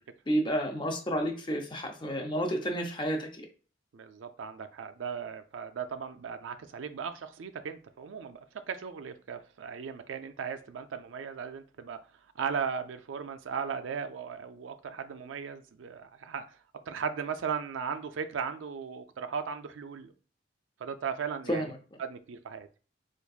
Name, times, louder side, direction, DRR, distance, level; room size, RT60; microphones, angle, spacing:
voice 1, 0.3-3.5 21.5-22.0, equal, 25° left, 0.5 m, -31 dB
voice 2, 3.9-8.4 8.7-12.0 12.4-16.4 16.9-20.1 20.8-21.6 22.0-22.7, right 6 dB, 85° right, 0.4 m, -37 dB
4.4 x 2.5 x 2.3 m
head